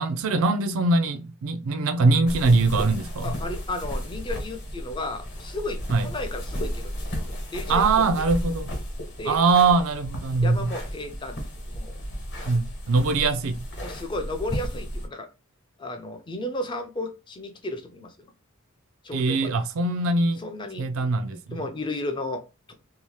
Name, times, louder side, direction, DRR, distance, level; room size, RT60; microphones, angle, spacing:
voice 1, 0.0-3.3 5.9-6.1 7.7-8.7 9.3-10.7 12.5-13.6 19.1-20.5 20.8-21.6, right 3 dB, 65° right, 0.4 m, -22 dB
sound 1, 2.3-15.1, equal, 50° left, 1.0 m, -34 dB
voice 2, 3.2-6.9 7.5-8.1 9.2-9.4 10.4-12.1 13.8-15.3 15.8-18.1 19.0-19.5 20.4-20.9 21.3-22.7, left 2 dB, 20° left, 0.3 m, -34 dB
2.8 x 2.0 x 3.1 m
head